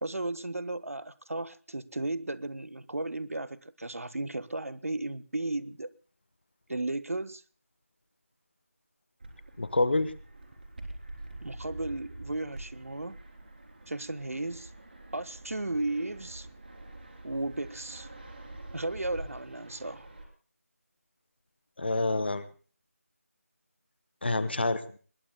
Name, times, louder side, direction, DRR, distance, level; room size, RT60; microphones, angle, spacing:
voice 1, 0.0-5.9 6.7-7.4 11.4-13.2 13.9-14.7 15.1-16.5 17.2-18.1 18.7-20.1, right 2 dB, 65° right, 0.9 m, -35 dB
Fixed-wing aircraft airplane, 9.2-20.2, right 2 dB, 40° right, 3.5 m, -46 dB
voice 2, 9.6-10.1 21.8-22.5 24.2-25.0, left 2 dB, 40° left, 1.0 m, -27 dB
22.5 x 20.5 x 2.2 m
figure-of-eight pair, 165°, 8 cm